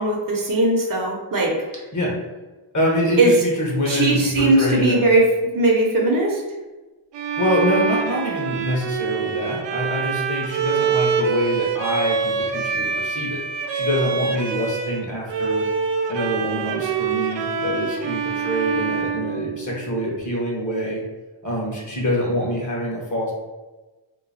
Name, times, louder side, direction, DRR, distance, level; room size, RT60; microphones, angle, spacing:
voice 1, 0.0-1.5 3.2-3.3 3.9-5.3 5.5-6.4, right 2 dB, 45° right, 0 dB, 0.8 m, -19 dB
voice 2, 2.7-5.1 7.4-13.4 13.7-15.7 16.1-21.0 21.4-23.3, equal, 40° left, -2 dB, 1.3 m, -25 dB
Bowed string instrument, 7.1-15.0 15.3-20.1, right 6 dB, 65° right, 0.5 m, -25 dB
3.0 x 2.2 x 4.1 m, 1.2 s
cardioid pair, 65°, 47 cm